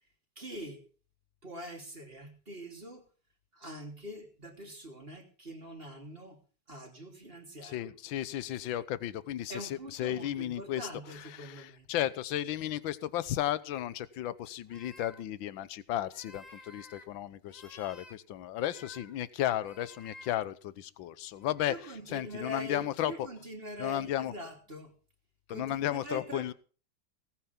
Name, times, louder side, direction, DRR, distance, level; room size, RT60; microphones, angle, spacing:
voice 1, 0.3-0.8 1.4-3.1 3.5-6.4 6.7-7.9 9.5-11.9 21.7-24.9 25.5-26.5, equal, 25° right, 3 dB, 3.3 m, -44 dB
voice 2, 7.6-10.9 11.4-21.7 22.1-23.1 23.8-24.3 25.5-26.5, left 12 dB, 70° left, 16 dB, 1.6 m, -34 dB
sound 1, 14.7-15.2 16.1-17.1 17.4-18.2 18.5-19.2 19.6-20.4 21.3-21.6 22.0-22.5, left 2 dB, 20° left, 1.7 m, -53 dB
18.5 x 9.4 x 5.9 m, 0.39 s
omnidirectional pair, 2.3 m